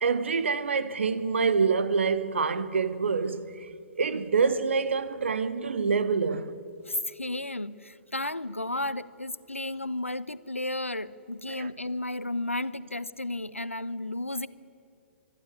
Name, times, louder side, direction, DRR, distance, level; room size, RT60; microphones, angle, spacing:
voice 1, 0.0-3.7 4.0-6.5 11.5-11.7, right 5 dB, 65° right, 1.1 m, -26 dB
voice 2, 6.9-14.5, left 1 dB, 90° left, 0.6 m, -33 dB
25.0 x 11.5 x 9.4 m
figure-of-eight pair, 115°, 7 cm